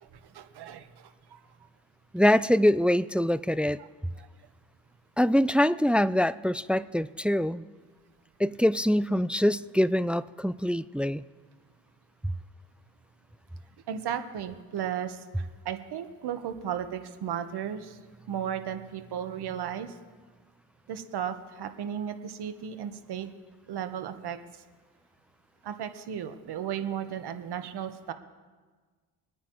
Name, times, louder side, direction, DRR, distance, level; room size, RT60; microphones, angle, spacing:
voice 1, 0.0-1.4 3.8-3.9 13.9-18.0 18.3-19.9 20.9-23.3 23.7-24.6 25.6-28.1, right 9 dB, 70° right, 9 dB, 1.3 m, -35 dB
voice 2, 2.1-3.8 5.2-7.6 8.4-11.2 12.2-12.3, left 1 dB, 5° right, 17 dB, 0.4 m, -24 dB
24.0 x 9.5 x 3.1 m, 1.4 s
supercardioid pair, 50°, 41 cm